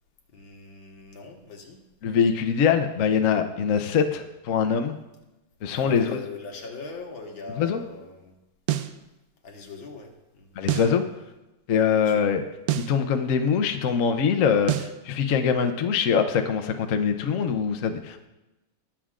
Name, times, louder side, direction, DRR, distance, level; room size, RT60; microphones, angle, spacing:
voice 1, 0.3-1.8 5.7-8.3 9.4-10.6 12.0-12.3, left 4 dB, 80° left, 1 dB, 2.2 m, -40 dB
voice 2, 2.0-5.0 5.6-6.2 7.6-7.8 10.6-11.0 11.7-12.4 12.8-18.3, left 7 dB, 60° left, 6 dB, 0.9 m, -23 dB
sound 1, 8.7-9.0 10.7-11.0 12.7-13.0 14.7-15.0, right 13 dB, 80° right, 0.8 m, -26 dB
20.5 x 7.4 x 2.5 m, 1.0 s
omnidirectional pair, 2.2 m